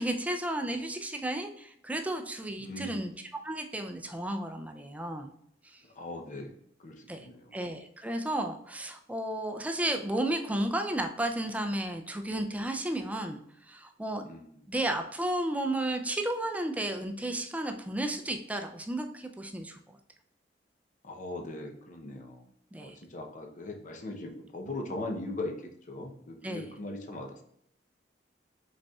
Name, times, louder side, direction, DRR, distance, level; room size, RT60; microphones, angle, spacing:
voice 1, 0.0-3.1 3.4-5.3 5.7-5.8 7.1-7.3 7.5-13.4 13.7-14.3 14.7-19.8 22.7-23.0 26.4-26.7, right 1 dB, 10° right, 5 dB, 0.4 m, -33 dB
voice 2, 2.6-3.0 6.0-6.5 6.8-7.5 14.2-14.5 21.0-22.4 22.8-27.4, left 2 dB, 45° left, 3 dB, 0.7 m, -39 dB
5.2 x 4.2 x 2.3 m, 0.69 s
head